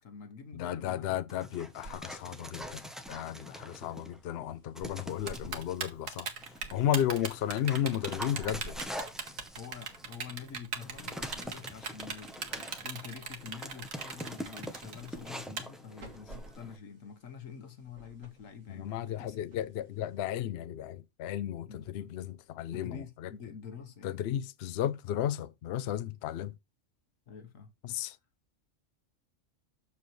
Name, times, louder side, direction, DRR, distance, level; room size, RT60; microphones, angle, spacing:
voice 1, 0.0-1.2 5.2-5.6 7.1-7.3 9.6-19.7 21.6-22.1 22.7-24.2 27.3-27.7, left 7 dB, 90° left, 1.5 m, -47 dB
voice 2, 0.5-6.3 6.7-8.8 18.7-23.3 24.0-26.5 27.8-28.2, left 11 dB, 65° left, 0.7 m, -34 dB
Dog, 1.3-4.2 4.7-5.8 6.4-16.8, equal, ahead, 0.6 m, -44 dB
sound 1, 1.5-20.4, right 1 dB, 65° right, 2.1 m, -55 dB
Typing, 5.3-15.6, right 6 dB, 90° right, 1.5 m, -38 dB
6.9 x 6.8 x 3.1 m
omnidirectional pair, 1.3 m